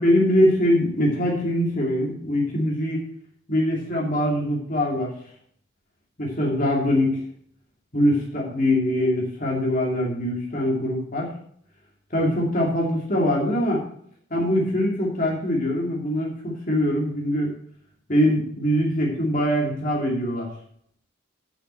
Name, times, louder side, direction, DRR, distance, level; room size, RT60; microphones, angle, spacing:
voice 1, 0.0-3.0 3.5-5.1 6.2-7.2 7.9-11.3 12.1-13.8 14.3-17.5 18.1-20.5, left 1 dB, 40° left, -2 dB, 2.6 m, -23 dB
8.0 x 6.1 x 7.5 m, 0.63 s
head